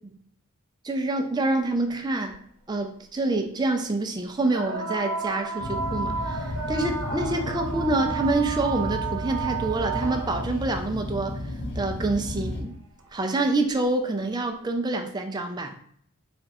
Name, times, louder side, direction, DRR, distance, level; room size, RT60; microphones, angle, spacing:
voice 1, 0.8-2.4 2.7-11.4 11.8-12.8 13.1-15.7, right 2 dB, 20° right, 5 dB, 0.4 m, -27 dB
sound 1, 2.3-2.4 4.4-10.6 12.1-12.2 13.0-13.1, right 4 dB, 85° right, 1.0 m, -32 dB
sound 2, 5.6-12.6, left 1 dB, 50° left, 0.8 m, -33 dB
3.3 x 2.4 x 4.1 m, 0.65 s
head